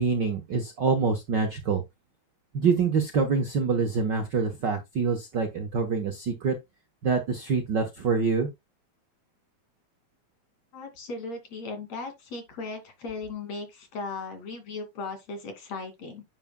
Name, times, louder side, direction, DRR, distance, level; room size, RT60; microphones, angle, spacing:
voice 1, 0.0-1.8 2.5-6.6 7.0-8.5, right 5 dB, 60° right, 1.2 m, -25 dB
voice 2, 10.7-16.2, left 3 dB, 65° left, 3.7 m, -37 dB
9.7 x 8.4 x 2.2 m
omnidirectional pair, 3.4 m